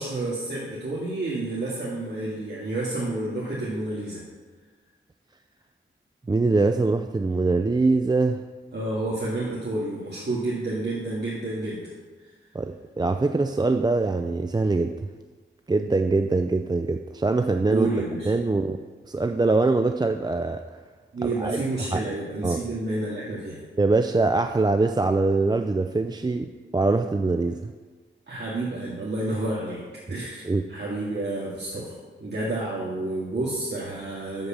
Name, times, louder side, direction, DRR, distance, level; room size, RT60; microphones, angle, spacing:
voice 1, 0.0-4.2 8.7-11.8 17.7-18.3 21.1-23.6 28.3-29.8 30.1-30.4 30.7-34.5, right 2 dB, 55° right, -6 dB, 1.9 m, -29 dB
voice 2, 6.3-8.4 12.5-14.9 15.7-17.9 18.3-18.8 19.1-20.6 21.2-21.6 21.9-22.0 22.4-22.6 23.8-27.7 30.4-30.6, right 3 dB, 20° right, 6 dB, 0.4 m, -23 dB
7.9 x 6.8 x 7.3 m, 1.4 s
wide cardioid pair, 105°, 21 cm